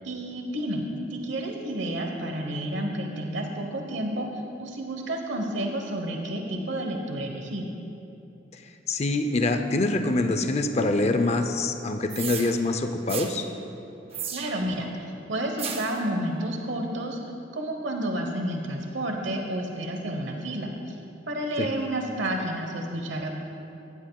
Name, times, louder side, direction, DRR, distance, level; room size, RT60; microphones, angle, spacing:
voice 1, 0.0-7.7 14.3-14.9 15.3-17.2 17.5-20.7 21.3-23.3, right 1 dB, 80° right, 3 dB, 1.0 m, -30 dB
voice 2, 8.9-13.5 21.6-21.7, left 2 dB, 35° left, 7 dB, 0.5 m, -25 dB
sound 1, 12.1-12.5 13.1-13.3 14.1-14.7 15.6-16.0, right 7 dB, 35° right, 0.7 m, -34 dB
16.0 x 11.0 x 2.3 m, 2.9 s
head